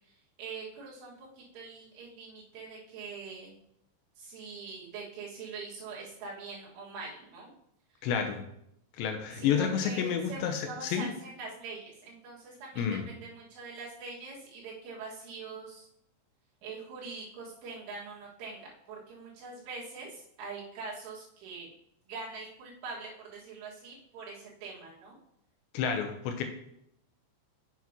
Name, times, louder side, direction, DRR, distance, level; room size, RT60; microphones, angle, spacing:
voice 1, 0.1-3.5 4.2-7.5 9.3-15.9 16.6-21.7 22.1-25.2, right 4 dB, 90° right, -6 dB, 4.5 m, -43 dB
voice 2, 8.0-8.4 9.0-11.1 12.8-13.1 25.7-26.4, left 7 dB, 80° left, 5 dB, 2.8 m, -30 dB
8.1 x 7.2 x 2.9 m, 0.75 s
omnidirectional pair, 5.4 m